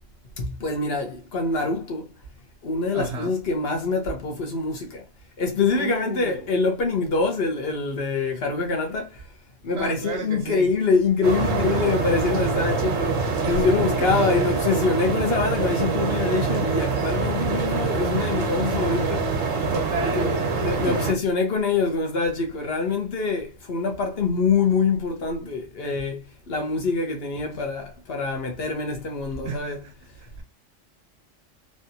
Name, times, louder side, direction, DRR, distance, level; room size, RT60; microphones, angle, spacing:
voice 1, 0.4-2.1 2.6-5.0 5.4-9.3 9.6-19.3 20.0-29.8, left 4 dB, 55° left, 1.1 m, -25 dB
voice 2, 2.9-3.3 5.7-6.6 9.7-10.7 13.4-13.9 14.4-14.6 19.7-21.0 29.4-29.9 30.2-30.4, right 3 dB, 65° right, 0.9 m, -33 dB
sound 1, 11.2-21.1, right 4 dB, 85° right, 1.1 m, -25 dB
3.2 x 2.5 x 2.7 m
omnidirectional pair, 1.3 m